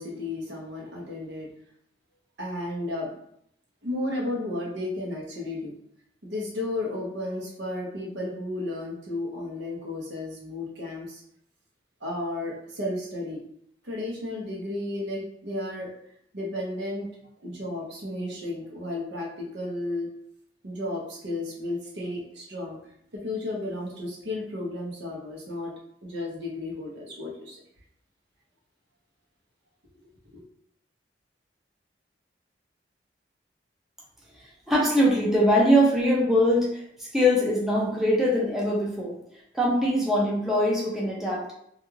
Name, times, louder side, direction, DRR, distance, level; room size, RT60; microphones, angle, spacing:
voice 1, 0.0-1.5 2.4-3.2 3.8-5.7 6.2-11.2 12.0-13.4 13.8-15.9 16.3-17.1 17.4-20.1 20.6-22.8 23.1-25.7 26.0-27.6, left 2 dB, 70° right, -2 dB, 0.8 m, -33 dB
voice 2, 34.7-39.2 39.5-41.5, equal, ahead, -5 dB, 0.5 m, -22 dB
2.4 x 2.3 x 3.0 m, 0.73 s
head